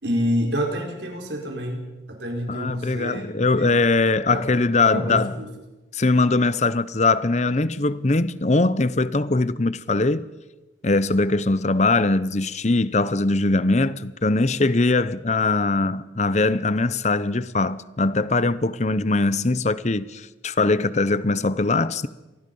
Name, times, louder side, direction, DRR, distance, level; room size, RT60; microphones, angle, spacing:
voice 1, 0.0-3.3 3.6-3.8 4.3-4.4 4.9-5.5, equal, 70° right, 4.7 m, -28 dB
voice 2, 2.5-5.3 5.9-10.3 10.8-22.1, left 3 dB, 35° left, 0.7 m, -21 dB
25.5 x 19.0 x 5.5 m
head